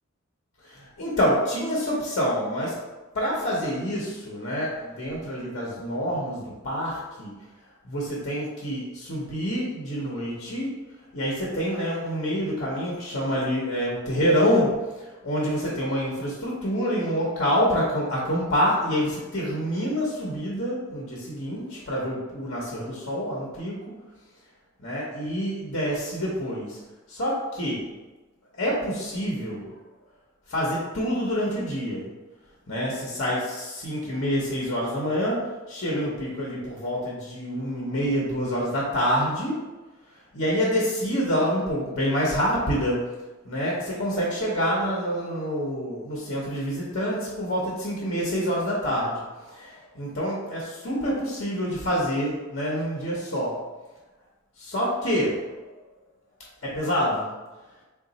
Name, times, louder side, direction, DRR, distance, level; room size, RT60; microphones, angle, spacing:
voice 1, 0.6-2.8 3.1-7.3 7.8-10.8 11.1-23.9 24.8-26.8 27.1-27.9 28.6-29.7 30.5-32.1 32.7-39.6 40.3-43.1 43.4-53.7 54.6-55.5 56.6-57.3, equal, 55° left, -4 dB, 0.8 m, -27 dB
3.7 x 2.3 x 4.0 m, 1.2 s
head